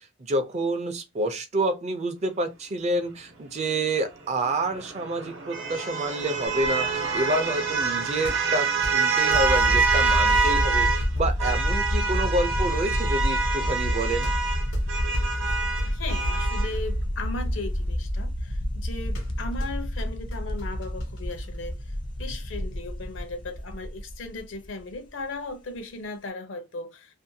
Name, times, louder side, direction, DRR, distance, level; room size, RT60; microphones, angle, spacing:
voice 1, 0.2-14.3, right 1 dB, 35° right, 0.4 m, -28 dB
sound 1, 4.4-11.1 11.4-16.8, right 4 dB, 75° right, 0.7 m, -26 dB
sound 2, 6.5-22.6, equal, 90° left, 1.1 m, -36 dB
sound 3, 9.3-24.9, equal, 25° left, 0.4 m, -29 dB
voice 2, 15.3-27.1, left 3 dB, 75° left, 0.6 m, -37 dB
2.5 x 2.2 x 2.6 m
head